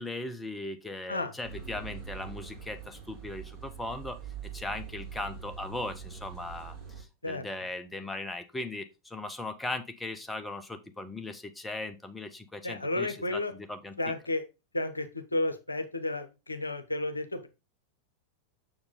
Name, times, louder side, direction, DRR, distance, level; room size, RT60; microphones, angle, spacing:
voice 1, 0.0-4.2 4.5-14.0, left 2 dB, 10° left, 0.7 m, -38 dB
sound 1, 1.4-7.0, right 7 dB, 25° right, 2.7 m, -43 dB
voice 2, 12.6-13.5 14.0-14.4 14.7-17.5, left 2 dB, 80° left, 0.8 m, -32 dB
6.4 x 4.8 x 3.7 m
figure-of-eight pair, 90°, 0 cm